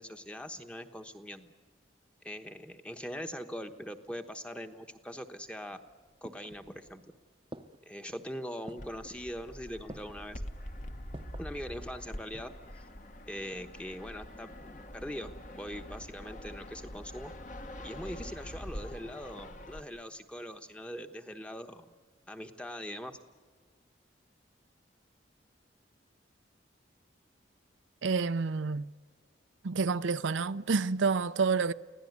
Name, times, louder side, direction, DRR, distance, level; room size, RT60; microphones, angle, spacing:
voice 1, 0.0-1.5 2.2-5.8 6.2-7.0 7.9-10.4 11.4-12.8 13.3-17.3 17.8-21.9 22.3-23.2, equal, 5° left, 1.1 m, -42 dB
sound 1, 5.7-7.0 7.5-8.0 8.7-9.1 9.9-10.3 11.1-11.5 12.1-12.7 13.0-13.1, right 1 dB, 25° right, 0.8 m, -49 dB
Fixed-wing aircraft airplane, 8.8-19.8, equal, 40° left, 1.4 m, -45 dB
voice 2, 28.0-28.9 29.6-31.7, right 4 dB, 80° right, 0.6 m, -29 dB
25.0 x 17.0 x 9.5 m
head